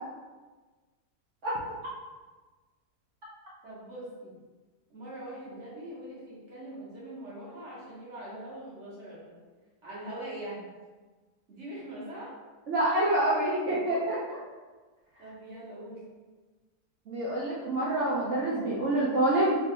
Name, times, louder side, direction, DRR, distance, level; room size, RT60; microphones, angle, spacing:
voice 1, 3.6-4.3 4.9-9.4 9.8-10.7 11.5-12.3 15.2-16.0, right 1 dB, 50° right, -7 dB, 1.2 m, -42 dB
voice 2, 12.7-14.4 17.1-19.5, right 1 dB, 65° right, -6 dB, 0.7 m, -27 dB
3.4 x 3.3 x 2.4 m, 1.3 s
omnidirectional pair, 1.8 m